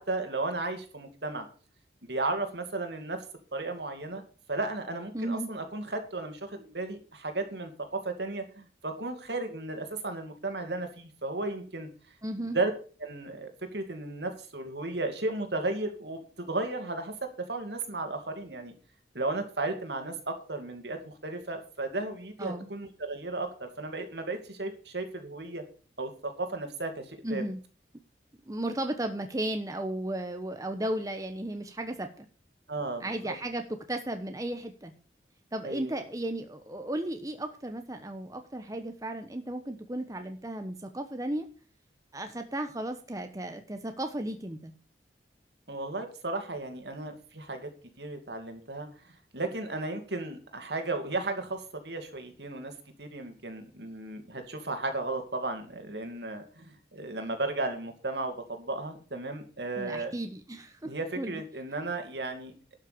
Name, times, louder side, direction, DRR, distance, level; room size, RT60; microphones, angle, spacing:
voice 1, 0.0-1.5 2.0-3.2 3.5-4.2 4.5-11.9 12.4-12.7 13.0-18.7 19.1-25.6 26.0-27.4 32.7-33.3 35.6-35.9 45.7-47.7 48.0-48.9 49.3-52.7 53.0-60.1 60.8-62.5, right 2 dB, 70° right, 6 dB, 2.5 m, -34 dB
voice 2, 5.1-5.5 12.2-12.6 22.4-22.7 27.2-27.6 28.5-32.3 33.0-34.9 35.5-41.5 42.1-44.7 59.8-61.4, right 1 dB, 20° right, 6 dB, 1.0 m, -35 dB
12.0 x 6.5 x 6.7 m, 0.39 s
head